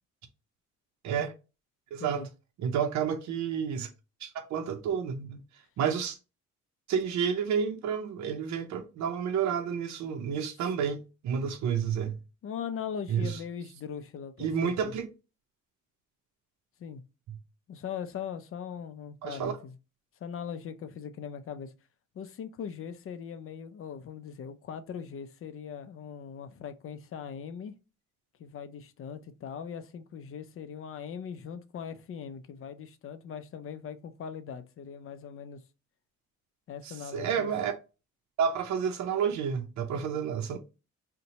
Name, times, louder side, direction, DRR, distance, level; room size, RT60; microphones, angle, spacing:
voice 1, 1.9-2.2 2.6-3.9 4.2-5.4 5.8-6.2 6.9-12.2 13.1-13.4 14.4-15.1 17.3-17.4 19.2-19.6 36.8-37.7 38.4-40.6, right 7 dB, 65° right, 0.6 m, -30 dB
voice 2, 12.4-14.9 16.8-17.0 17.7-19.7 20.2-21.7 22.1-27.8 28.4-35.6 36.7-37.5 39.9-40.2, left 7 dB, 45° left, 0.4 m, -40 dB
2.7 x 2.1 x 3.9 m
cardioid pair, 90°, 30 cm